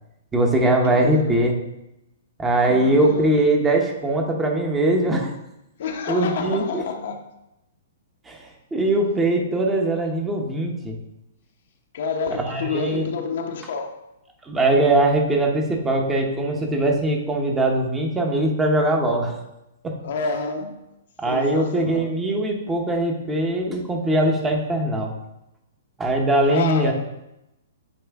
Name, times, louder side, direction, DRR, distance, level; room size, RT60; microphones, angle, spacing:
voice 1, 0.3-1.5 2.4-5.3 6.1-6.8 8.3-10.9 12.3-13.1 14.4-19.4 19.8-20.0 21.2-25.1 26.0-26.9, right 1 dB, 10° right, 1 dB, 0.8 m, -21 dB
voice 2, 0.8-1.5 2.7-3.4 5.8-7.2 11.9-14.0 20.0-20.8 21.2-22.2 26.4-26.9, left 4 dB, 60° left, 5 dB, 0.8 m, -29 dB
9.1 x 3.1 x 3.5 m, 0.87 s
hypercardioid pair, 155°, 0 cm